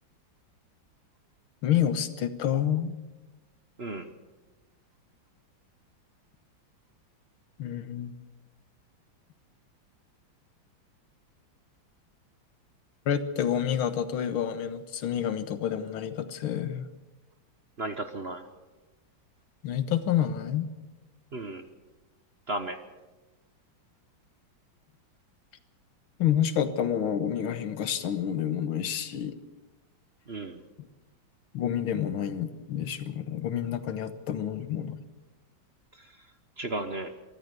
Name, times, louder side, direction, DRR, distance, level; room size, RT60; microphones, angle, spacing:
voice 1, 1.6-3.0 7.6-8.1 13.1-16.9 19.6-20.7 26.2-29.4 30.8-30.9 31.5-35.0, left 9 dB, 85° left, 11 dB, 2.1 m, -28 dB
voice 2, 17.8-18.4 21.3-21.7 22.5-22.8 30.3-30.6 36.6-37.1, right 2 dB, 40° right, 8 dB, 1.1 m, -34 dB
23.5 x 13.5 x 8.1 m, 1.2 s
omnidirectional pair, 2.2 m